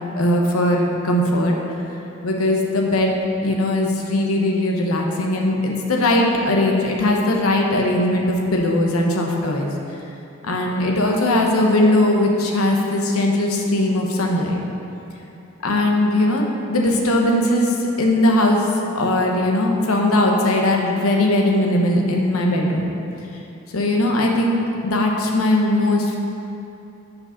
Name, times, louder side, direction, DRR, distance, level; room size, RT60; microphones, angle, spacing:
voice 1, 0.2-1.6 2.2-9.7 10.4-14.6 15.6-18.7 18.9-22.9 23.7-26.2, left 1 dB, 85° left, 0 dB, 0.9 m, -19 dB
6.3 x 5.0 x 5.6 m, 2.8 s
head